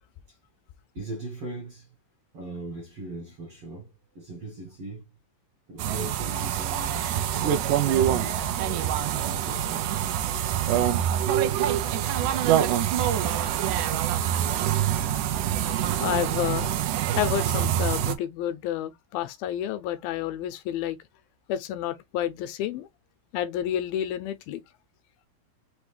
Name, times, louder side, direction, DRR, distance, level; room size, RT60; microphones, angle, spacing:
voice 1, 0.9-1.9 2.3-5.1 5.7-8.4 9.1-10.0, right 2 dB, 65° right, 1.4 m, -39 dB
sound 1, 5.8-18.1, right 10 dB, 85° right, 1.7 m, -25 dB
voice 2, 16.0-16.8 17.2-21.0 21.5-22.9 23.3-24.6, left 11 dB, 85° left, 2.3 m, -30 dB
5.9 x 2.2 x 3.2 m
omnidirectional pair, 4.3 m